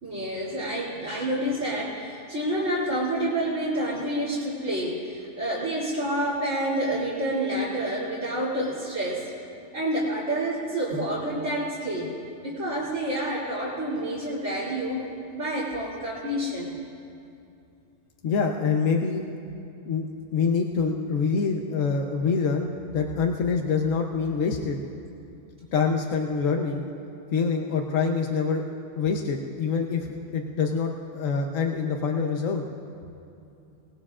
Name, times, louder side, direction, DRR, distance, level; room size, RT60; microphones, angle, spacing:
voice 1, 0.0-9.3 9.7-12.1 12.4-15.0 15.3-16.7, right 1 dB, 70° right, -10 dB, 3.2 m, -28 dB
voice 2, 18.2-19.2 19.8-20.0 20.3-24.8 25.7-26.8 27.3-28.6 29.0-30.1 30.3-32.6, left 5 dB, 85° left, 2 dB, 1.3 m, -25 dB
27.0 x 18.5 x 2.5 m, 2.6 s
omnidirectional pair, 1.3 m